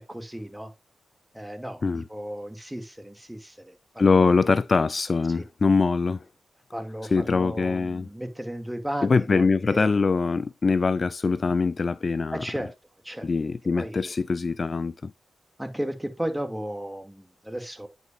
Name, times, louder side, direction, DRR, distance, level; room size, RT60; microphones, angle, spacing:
voice 1, 0.1-0.7 1.3-4.3 5.3-5.4 6.7-9.9 12.3-12.7 13.0-13.3 13.8-14.1 15.6-17.9, right 1 dB, 10° right, 2.4 m, -35 dB
voice 2, 4.0-6.2 7.1-8.1 9.0-12.4 13.2-15.1, left 4 dB, 45° left, 0.4 m, -23 dB
9.1 x 6.1 x 2.5 m
supercardioid pair, 45°, 0 cm